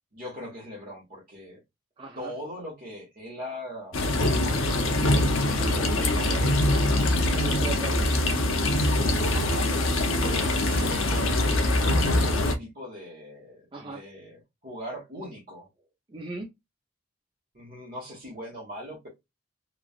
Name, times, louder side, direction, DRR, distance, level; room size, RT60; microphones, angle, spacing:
voice 1, 0.1-1.6 2.2-6.9 9.2-9.7 10.2-15.7 17.5-19.1, equal, 45° right, 1.2 m, -40 dB
voice 2, 2.0-2.3 5.6-5.7 7.2-8.1 11.6-11.9 13.7-14.0 16.1-16.5, right 2 dB, 25° right, 0.5 m, -37 dB
sound 1, 3.9-12.6, left 1 dB, 85° left, 0.7 m, -23 dB
3.1 x 2.4 x 2.3 m
head